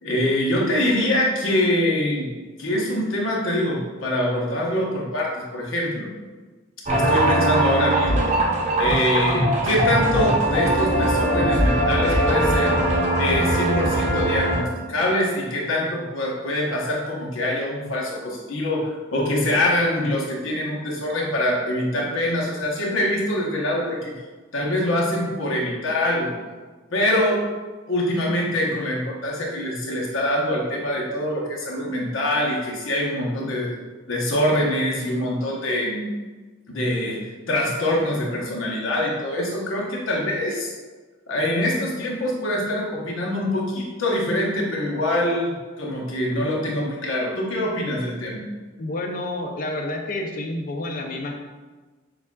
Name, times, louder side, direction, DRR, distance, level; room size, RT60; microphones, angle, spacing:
voice 1, 0.0-2.3 2.6-6.1 6.9-8.3 8.8-12.8 13.2-24.2 24.5-26.3 26.9-27.4 27.9-33.7 34.1-36.1 36.7-40.7 41.3-48.4, left 1 dB, 90° left, -3 dB, 1.0 m, -24 dB
sound 1, 6.8-14.6, right 1 dB, 35° right, 0.6 m, -21 dB
voice 2, 48.8-51.3, left 1 dB, 45° left, 3 dB, 0.5 m, -29 dB
6.9 x 2.4 x 2.3 m, 1.3 s
head